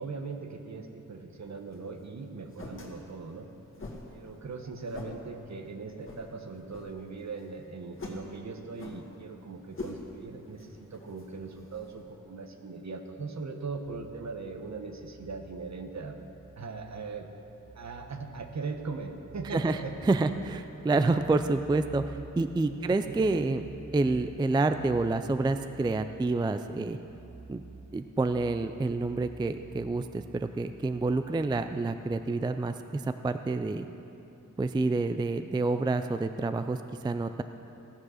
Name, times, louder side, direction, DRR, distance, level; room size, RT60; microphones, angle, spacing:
voice 1, 0.0-3.5 4.1-16.2 16.6-17.3 17.7-19.9 22.7-23.2, right 4 dB, 60° right, 5 dB, 1.1 m, -40 dB
sound 1, 1.4-12.2, left 2 dB, 40° left, 1.7 m, -46 dB
sound 2, 13.7-32.3, right 4 dB, 40° right, 0.7 m, -50 dB
voice 2, 19.4-27.0 27.5-27.6 27.9-33.9 34.6-37.4, right 3 dB, 15° right, 9 dB, 0.3 m, -28 dB
16.0 x 7.4 x 6.4 m, 2.9 s
wide cardioid pair, 125°, 32 cm